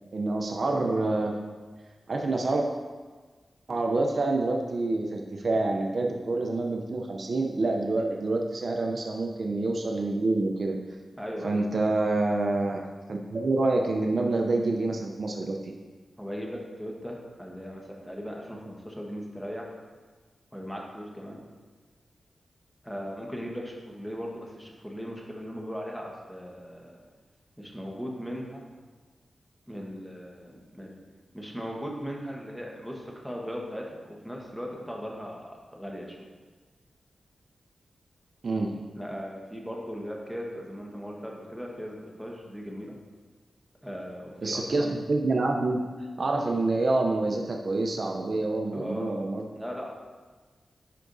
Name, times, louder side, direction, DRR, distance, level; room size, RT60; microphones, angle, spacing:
voice 1, 0.1-1.4 2.1-2.7 3.7-10.8 11.4-12.8 13.1-15.7 38.4-38.7 44.4-49.4, right 2 dB, 55° right, 2 dB, 0.6 m, -27 dB
voice 2, 11.2-11.6 16.2-19.7 20.5-21.4 22.8-27.0 27.6-28.6 29.7-30.9 31.3-36.3 39.0-42.9 43.8-45.0 48.7-49.2 49.5-49.9, equal, ahead, -1 dB, 1.3 m, -38 dB
11.0 x 4.8 x 2.7 m, 1.4 s
wide cardioid pair, 85°, 0 cm